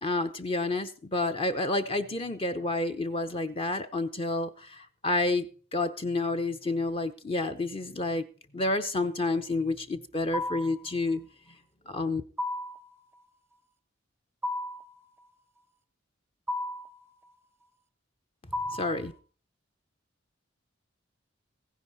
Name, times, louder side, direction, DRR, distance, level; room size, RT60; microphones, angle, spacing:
voice 1, 0.0-5.5 5.7-8.3 8.5-11.2 11.9-12.2 18.7-19.1, left 2 dB, 30° left, 0.7 m, -29 dB
sound 1, 10.3-10.8 12.4-12.9 14.4-14.9 16.5-17.0 18.5-19.0, left 1 dB, 10° right, 0.6 m, -33 dB
15.5 x 10.5 x 4.1 m
head